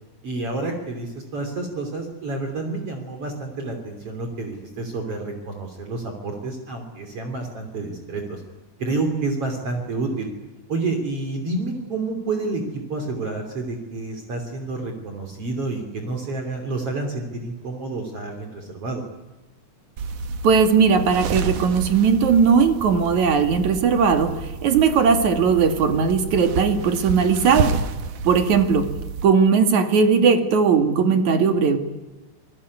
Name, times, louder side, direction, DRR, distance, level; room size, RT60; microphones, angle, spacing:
voice 1, 0.2-8.4 8.8-10.3 10.7-19.0, right 3 dB, 50° right, 4 dB, 4.0 m, -29 dB
sound 1, 20.0-29.3, right 4 dB, 85° right, 3.1 m, -30 dB
voice 2, 20.4-27.8 28.2-28.9 29.2-31.8, right 6 dB, 70° right, 7 dB, 3.6 m, -18 dB
28.0 x 20.5 x 9.8 m, 1.1 s
omnidirectional pair, 3.5 m